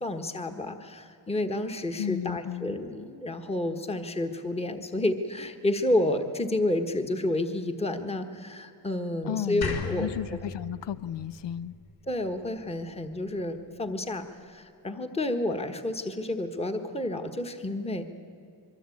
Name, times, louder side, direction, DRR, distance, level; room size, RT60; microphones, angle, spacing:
voice 1, 0.0-10.1 12.1-18.1, left 1 dB, 15° left, 1.3 m, -30 dB
voice 2, 2.0-2.8 9.2-11.7, left 9 dB, 70° left, 0.7 m, -33 dB
sound 1, 9.6-12.8, left 3 dB, 55° left, 3.8 m, -37 dB
24.5 x 23.5 x 8.5 m
wide cardioid pair, 165°, 44 cm